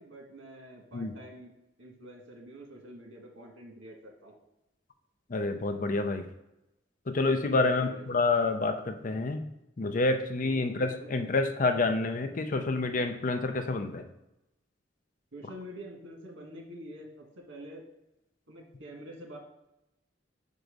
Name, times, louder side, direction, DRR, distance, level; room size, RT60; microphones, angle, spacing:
voice 1, 0.0-1.5 1.8-4.4 7.5-8.1 10.4-11.1 15.3-17.8 18.5-19.4, equal, 85° right, 1 dB, 1.8 m, -46 dB
voice 2, 5.3-6.3 7.1-9.5 9.8-14.1, left 3 dB, 45° left, 7 dB, 0.5 m, -28 dB
5.2 x 4.6 x 5.2 m, 0.90 s
head